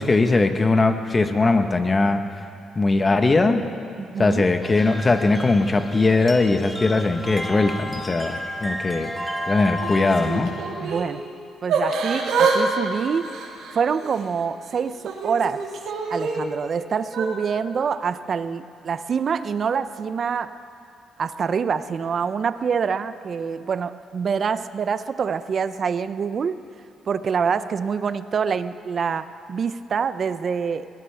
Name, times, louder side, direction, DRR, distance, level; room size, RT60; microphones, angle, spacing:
voice 1, 0.0-2.2 2.7-3.6 4.2-10.5, left 3 dB, 30° left, 7 dB, 1.1 m, -20 dB
voice 2, 4.0-4.5 10.8-11.2 11.6-13.3 13.7-15.7 16.1-20.6 21.2-26.6 27.1-30.9, right 6 dB, 50° right, 13 dB, 0.5 m, -26 dB
sound 1, 4.6-10.4, left 1 dB, ahead, 2.0 m, -32 dB
Yell / Crying sobbing, 9.8-11.1 11.7-12.6 12.8-14.2 14.7-16.4 17.1-17.3, right 5 dB, 85° right, 2.5 m, -26 dB
21.5 x 17.0 x 3.5 m, 2.4 s
cardioid pair, 90°, 0 cm